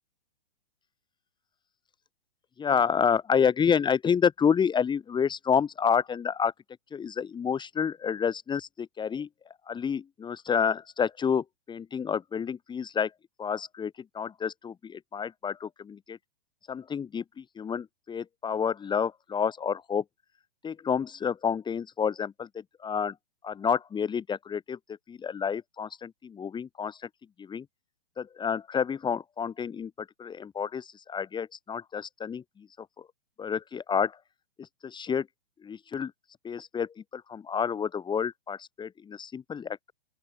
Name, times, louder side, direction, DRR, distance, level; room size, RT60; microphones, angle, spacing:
voice 1, 2.6-6.5 6.9-9.3 9.7-13.1 13.4-16.2 16.7-20.0 20.6-23.1 23.4-24.8 25.1-27.1 27.4-27.6 28.2-33.1 33.4-34.2 34.6-35.3 35.6-36.1 36.4-39.9, left 7 dB, 15° left, 3.3 m, -29 dB
open air
figure-of-eight pair, 115°, 31 cm